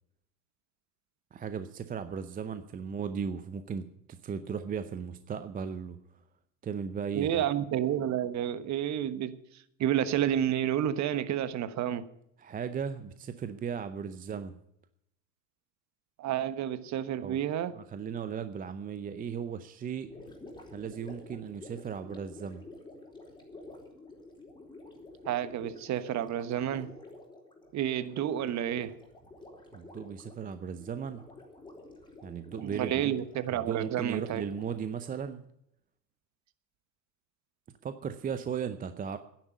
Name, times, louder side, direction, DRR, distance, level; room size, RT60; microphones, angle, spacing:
voice 1, 1.3-3.9 4.2-6.0 6.6-7.4 12.4-14.5 17.2-17.5 17.7-20.1 20.7-22.6 29.7-31.2 32.2-33.1 33.5-35.4 37.8-39.2, right 7 dB, 15° right, 11 dB, 0.7 m, -36 dB
voice 2, 7.1-9.4 9.8-12.0 16.2-17.7 25.2-26.9 27.7-29.0 32.6-34.4, right 10 dB, 35° right, 13 dB, 1.2 m, -30 dB
Gurgling, 20.0-35.3, left 2 dB, 10° left, 4.2 m, -50 dB
11.0 x 10.0 x 8.3 m, 0.76 s
hypercardioid pair, 100°, 49 cm